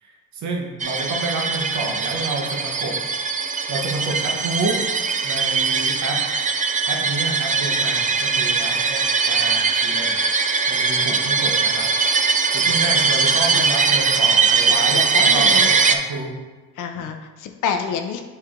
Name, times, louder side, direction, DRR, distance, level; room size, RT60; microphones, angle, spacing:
voice 1, 0.0-3.1 3.7-4.8 5.2-6.3 6.9-10.2 10.7-11.9 12.5-16.4 16.9-17.1, right 2 dB, 65° right, 0 dB, 1.2 m, -29 dB
sound 1, 0.8-15.9, right 5 dB, 25° right, 0.5 m, -20 dB
voice 2, 14.9-15.7 16.8-18.2, left 6 dB, 85° left, 6 dB, 0.7 m, -28 dB
7.6 x 3.3 x 3.7 m, 1.2 s
cardioid pair, 90°, 30 cm